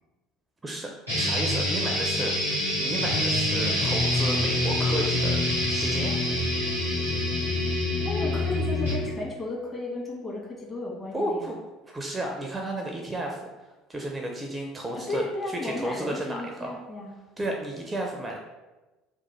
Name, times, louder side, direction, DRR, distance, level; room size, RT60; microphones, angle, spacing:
sound 1, 1.1-9.1, left 1 dB, 90° left, 1.0 m, -26 dB
voice 1, 1.2-5.4 5.7-6.2 11.1-11.6 11.9-16.8 17.4-18.4, right 1 dB, 15° right, 1 dB, 0.4 m, -33 dB
voice 2, 8.0-11.5 14.9-17.1, left 2 dB, 25° left, -3 dB, 1.2 m, -34 dB
3.0 x 2.1 x 4.1 m, 1.1 s
figure-of-eight pair, 60°, 0 cm